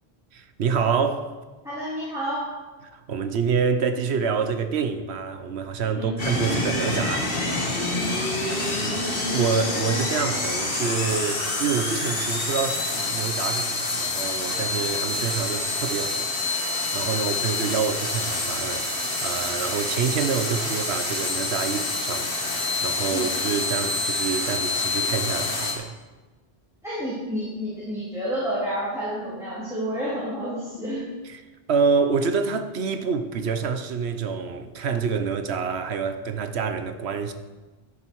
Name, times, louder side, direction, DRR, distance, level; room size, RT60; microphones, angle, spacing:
voice 1, 0.3-1.3 2.9-7.4 8.4-16.3 16.9-25.9 31.3-31.4 31.7-37.3, right 5 dB, 80° right, 1.1 m, -27 dB
voice 2, 1.6-2.4 6.0-6.1 7.9-8.1 23.1-23.2 26.8-31.0, equal, 5° right, 3.6 m, -30 dB
sound 1, 6.2-25.7, left 2 dB, 60° left, 1.8 m, -27 dB
13.5 x 7.1 x 4.7 m
omnidirectional pair, 1.1 m